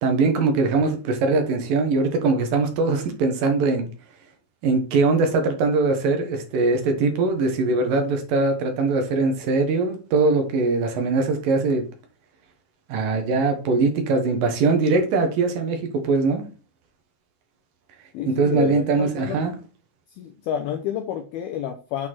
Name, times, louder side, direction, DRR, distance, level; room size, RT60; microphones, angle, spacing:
voice 1, 0.0-3.9 4.6-11.8 12.9-16.4 18.3-19.5, right 3 dB, 65° right, 5 dB, 2.5 m, -21 dB
voice 2, 18.1-19.5 20.2-22.1, left 10 dB, 80° left, 4 dB, 2.3 m, -29 dB
8.7 x 4.5 x 4.4 m, 0.35 s
omnidirectional pair, 5.2 m